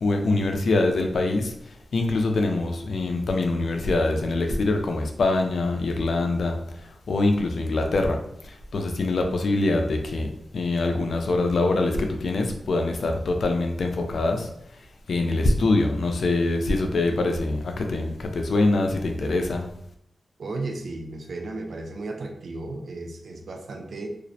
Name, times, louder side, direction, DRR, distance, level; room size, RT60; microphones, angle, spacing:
voice 1, 0.0-14.5 15.1-19.7, left 2 dB, 75° left, 4 dB, 0.3 m, -24 dB
voice 2, 20.4-24.1, right 2 dB, 75° right, 3 dB, 0.4 m, -34 dB
2.4 x 2.0 x 2.6 m, 0.72 s
wide cardioid pair, 85°, 0 cm